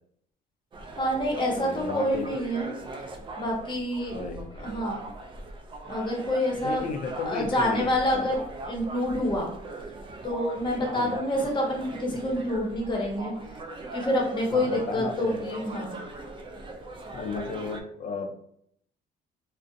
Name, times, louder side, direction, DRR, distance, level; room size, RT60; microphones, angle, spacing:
sound 1, 0.7-17.8, right 2 dB, 30° right, 0.3 m, -40 dB
voice 1, 1.0-2.7 3.4-4.2 4.6-5.0 5.9-6.9 7.2-9.5 10.2-13.3 13.9-16.0, left 1 dB, 30° left, -1 dB, 0.8 m, -27 dB
voice 2, 1.6-2.3 4.1-4.5 6.6-8.3 10.9-11.2 14.5-15.4 17.1-18.3, left 4 dB, 50° left, 5 dB, 0.4 m, -34 dB
2.5 x 2.1 x 2.5 m, 0.68 s
cardioid pair, 110°, 17 cm